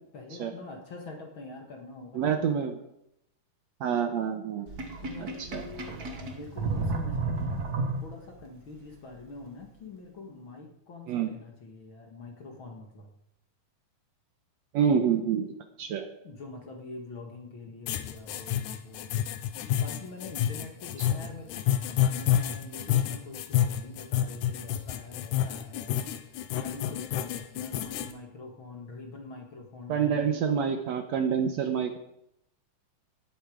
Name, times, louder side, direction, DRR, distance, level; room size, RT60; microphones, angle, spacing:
voice 1, 0.1-2.6 3.8-4.0 5.0-13.1 14.8-15.0 16.2-19.2 19.6-26.0 26.5-30.4, left 3 dB, 45° left, 2 dB, 2.1 m, -45 dB
voice 2, 2.1-2.8 3.8-4.7 5.2-5.6 11.1-11.3 14.7-15.5 15.8-16.1 21.0-21.1 29.9-32.0, right 7 dB, 70° right, 7 dB, 1.9 m, -27 dB
Sink (filling or washing), 4.7-8.4, right 3 dB, 45° right, 1.4 m, -32 dB
sound 1, 17.9-28.1, left 11 dB, 80° left, 2.2 m, -29 dB
17.5 x 7.9 x 5.1 m, 0.79 s
omnidirectional pair, 3.7 m